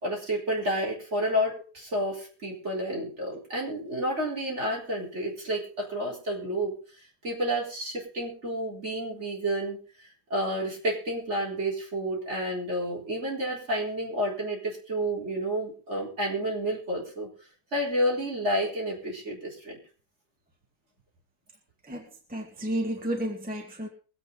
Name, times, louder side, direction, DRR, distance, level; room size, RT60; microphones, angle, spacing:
voice 1, 0.0-6.7 7.2-17.3 17.7-19.8, equal, 45° right, -3 dB, 4.4 m, -30 dB
voice 2, 21.9-23.9, right 1 dB, 5° right, 1 dB, 1.9 m, -32 dB
22.5 x 8.3 x 3.9 m, 0.37 s
omnidirectional pair, 1.7 m